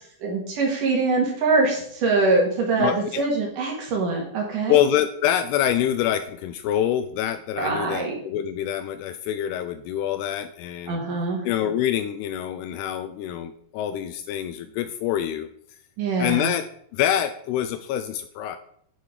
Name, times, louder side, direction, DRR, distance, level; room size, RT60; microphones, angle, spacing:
voice 1, 0.2-4.8 7.6-8.2 10.9-11.4 16.0-16.5, right 3 dB, 55° right, -1 dB, 3.0 m, -23 dB
voice 2, 2.8-3.3 4.7-11.0 11.4-15.5 16.2-16.6 16.9-18.6, left 11 dB, 85° left, 10 dB, 2.4 m, -25 dB
9.2 x 5.7 x 4.9 m, 0.65 s
omnidirectional pair, 5.0 m